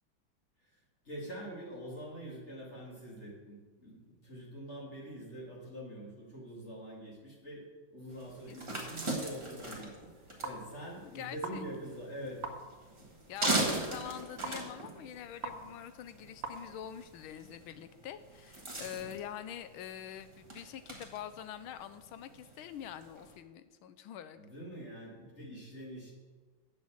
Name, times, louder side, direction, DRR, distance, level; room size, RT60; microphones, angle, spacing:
voice 1, 1.0-9.9 10.4-12.4 13.0-13.1 19.0-19.1 24.4-26.1, right 1 dB, 35° left, -3 dB, 2.7 m, -45 dB
sound 1, 8.1-23.4, right 2 dB, 15° right, 1.4 m, -40 dB
voice 2, 8.5-9.2 11.0-11.6 13.3-24.4, left 10 dB, 85° left, 11 dB, 1.5 m, -45 dB
sound 2, 10.1-17.6, right 4 dB, 50° right, 1.3 m, -46 dB
8.3 x 6.4 x 7.5 m, 1.3 s
omnidirectional pair, 2.2 m